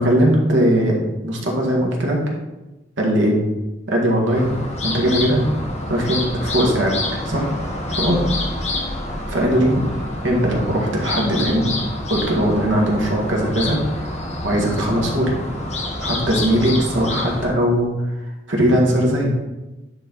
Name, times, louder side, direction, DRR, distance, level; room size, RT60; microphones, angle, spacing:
voice 1, 0.0-2.2 3.0-3.4 3.9-4.6 4.8-5.4 5.9-7.0 7.3-7.5 7.9-8.2 9.3-9.7 10.2-11.7 12.1-13.8 14.4-15.3 16.0-17.9 18.5-19.3, equal, 80° right, -1 dB, 1.8 m, -19 dB
sound 1, 4.3-17.5, left 2 dB, 35° left, 1.0 m, -27 dB
9.9 x 4.2 x 4.0 m, 1.1 s
head